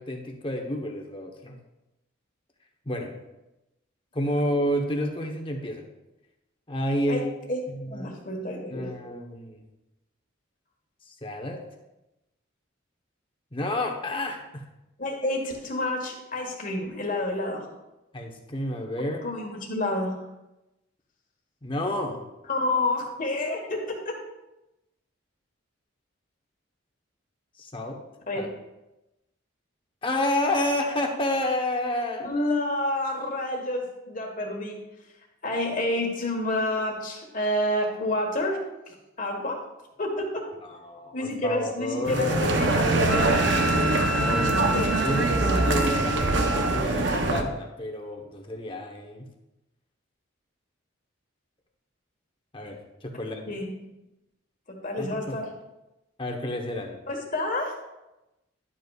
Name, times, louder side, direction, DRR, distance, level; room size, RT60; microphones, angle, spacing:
voice 1, 0.0-1.6 2.9-3.2 4.1-5.9 6.7-7.3 7.7-8.1 8.7-9.6 11.0-11.6 13.5-14.6 18.1-19.2 21.6-22.2 27.6-28.0 28.3-28.5 30.0-32.3 40.6-42.4 44.1-49.2 52.5-53.4 55.0-55.4 56.2-57.0, left 1 dB, 25° left, 3 dB, 0.9 m, -30 dB
voice 2, 7.9-8.9 15.0-17.7 19.2-20.2 22.5-24.1 28.3-28.5 32.2-34.8 35.4-38.6 38.9-39.6 40.0-40.4 41.1-43.3 53.5-53.8 54.7-55.5 57.1-57.8, left 1 dB, 40° left, 2 dB, 1.4 m, -29 dB
sound 1, 42.0-47.4, right 2 dB, 60° right, 0.8 m, -23 dB
Wind instrument woodwind instrument, 43.1-46.8, equal, ahead, 0.4 m, -30 dB
11.0 x 8.0 x 2.4 m, 0.96 s
head